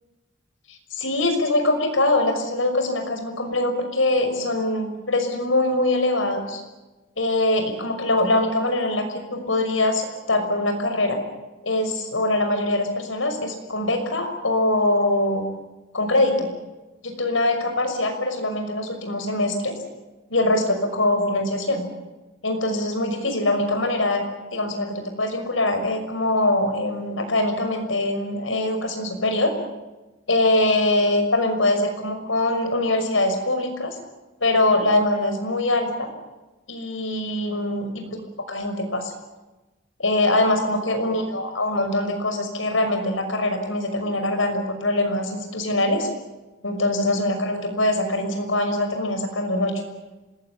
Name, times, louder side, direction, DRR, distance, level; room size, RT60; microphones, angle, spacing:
voice 1, 0.7-6.6 7.2-11.2 11.6-15.4 15.9-16.5 17.0-19.8 20.3-21.9 22.4-24.2 24.5-29.5 30.3-34.0 34.4-36.1 36.7-38.1 38.5-39.2 40.0-46.1 46.6-49.7, left 2 dB, 90° left, 6 dB, 6.0 m, -23 dB
27.5 x 20.5 x 8.6 m, 1.1 s
head